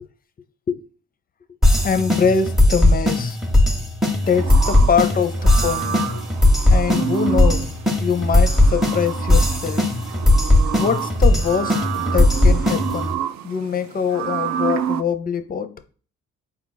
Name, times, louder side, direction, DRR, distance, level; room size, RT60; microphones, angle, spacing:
sound 1, 1.6-13.1, left 1 dB, ahead, 0.8 m, -18 dB
voice 1, 1.8-3.4 4.3-6.0 6.7-7.7 8.0-9.9 10.8-13.2 13.4-15.7, left 6 dB, 30° left, 0.5 m, -23 dB
sound 2, 4.2-15.0, right 9 dB, 65° right, 0.4 m, -29 dB
4.4 x 2.4 x 3.9 m
cardioid pair, 90°, 30 cm